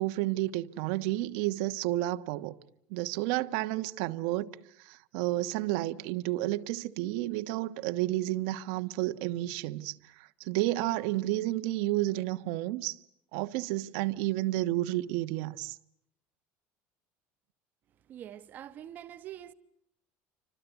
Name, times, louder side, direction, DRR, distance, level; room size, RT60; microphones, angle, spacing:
voice 1, 0.0-2.6 2.9-4.5 4.8-9.9 10.4-13.0 13.3-15.8, right 16 dB, 75° right, 1.3 m, -31 dB
voice 2, 18.0-19.5, right 11 dB, 35° right, 1.1 m, -45 dB
29.0 x 25.5 x 8.1 m
cardioid pair, 175°, 5 cm